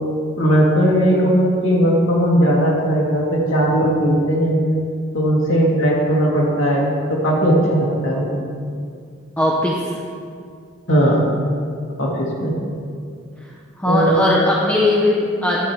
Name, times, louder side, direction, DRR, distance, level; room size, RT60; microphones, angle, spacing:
voice 1, 0.4-4.6 5.1-8.4 10.9-11.2 12.0-12.6 13.8-14.2, equal, 75° left, -3 dB, 2.2 m, -17 dB
voice 2, 9.4-10.0 13.4-13.5 13.8-15.7, left 1 dB, 5° left, -4 dB, 0.7 m, -19 dB
11.0 x 7.2 x 4.6 m, 2.2 s
head